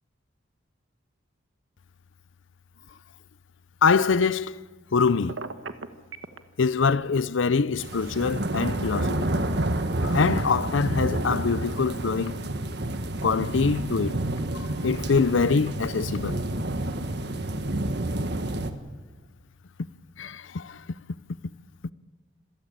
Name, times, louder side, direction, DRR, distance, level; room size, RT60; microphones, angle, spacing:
voice 1, 3.8-4.6 4.9-5.4 6.6-9.4 10.0-12.3 13.2-14.2 14.8-16.4 20.2-20.8, left 5 dB, 80° left, 0.6 m, -24 dB
Telephone, 5.3-6.4, right 4 dB, 85° right, 1.3 m, -36 dB
sound 1, 7.8-18.7, right 1 dB, 60° right, 1.5 m, -29 dB
26.5 x 15.5 x 8.9 m
head